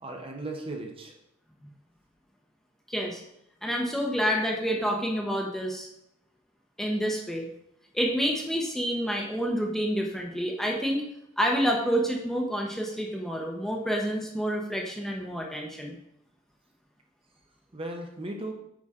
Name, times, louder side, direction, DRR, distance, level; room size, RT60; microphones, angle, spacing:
voice 1, 0.0-1.1 17.7-18.5, right 2 dB, 25° right, 2 dB, 0.9 m, -36 dB
voice 2, 2.9-3.2 3.6-5.9 6.8-7.5 7.9-11.0 11.4-16.0, equal, ahead, 0 dB, 0.9 m, -28 dB
8.5 x 5.1 x 3.7 m, 0.79 s
head